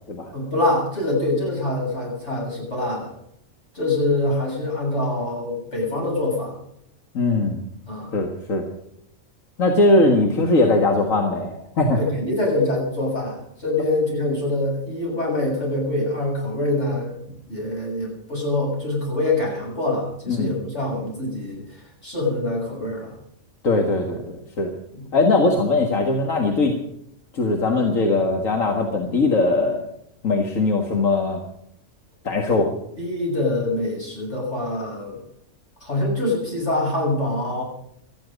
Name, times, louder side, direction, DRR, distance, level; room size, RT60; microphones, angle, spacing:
voice 1, 0.3-3.1 3.7-6.5 7.9-8.1 10.0-10.1 12.0-17.2 17.5-23.1 24.9-25.1 32.5-32.7 33.0-35.2 35.8-37.6, left 2 dB, 60° left, -2 dB, 7.8 m, -25 dB
voice 2, 7.1-7.6 8.1-8.7 9.6-12.0 20.3-20.5 23.6-24.7 25.1-26.7 27.3-29.8 30.2-31.4 32.2-32.7, left 2 dB, 90° left, 2 dB, 2.1 m, -20 dB
18.5 x 13.5 x 5.2 m, 0.73 s
omnidirectional pair, 1.3 m